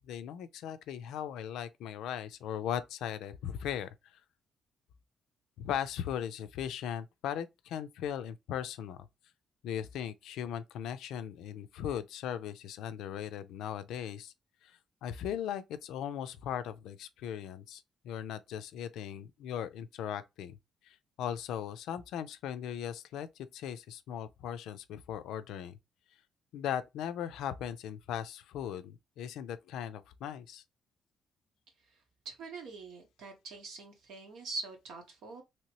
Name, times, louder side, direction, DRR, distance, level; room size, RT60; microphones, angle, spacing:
voice 1, 0.0-4.2 5.6-9.1 9.6-14.3 14.6-20.6 20.8-25.8 26.5-30.6, left 9 dB, 85° left, 0.3 m, -38 dB
voice 2, 32.2-35.4, right 3 dB, 85° right, 1.1 m, -43 dB
3.0 x 2.9 x 2.9 m
cardioid pair, 90°, 0 cm